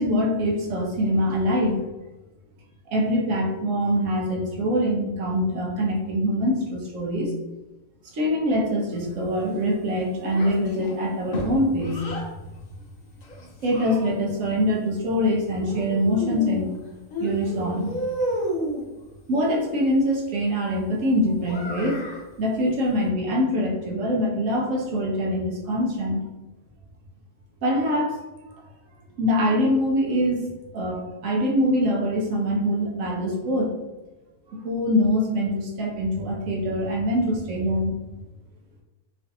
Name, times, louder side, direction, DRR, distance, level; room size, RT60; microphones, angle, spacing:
voice 1, 0.0-1.8 2.9-7.3 8.1-12.1 13.6-16.7 17.2-17.9 19.3-22.0 22.4-26.2 27.6-28.2 29.2-30.5 30.7-33.7 34.5-37.9, equal, 75° right, -2 dB, 1.1 m, -24 dB
Child speech kid speaking, 10.3-12.3 13.2-14.4 15.6-16.8 17.1-18.9 21.4-22.3, right 1 dB, 50° left, 0.5 m, -31 dB
3.1 x 2.6 x 2.6 m, 1.1 s
omnidirectional pair, 1.4 m